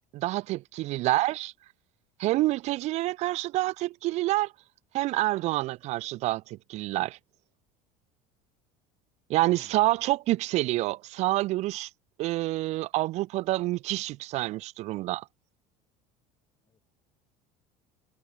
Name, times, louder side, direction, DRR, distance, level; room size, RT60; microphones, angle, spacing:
voice 1, 0.1-1.5 2.2-4.5 4.9-7.2 9.3-11.9 12.2-15.2, right 18 dB, 50° right, 1.4 m, -27 dB
voice 2, 9.5-10.0 16.6-16.8, left 7 dB, 25° left, 7.0 m, -57 dB
cardioid pair, 160°, 15 cm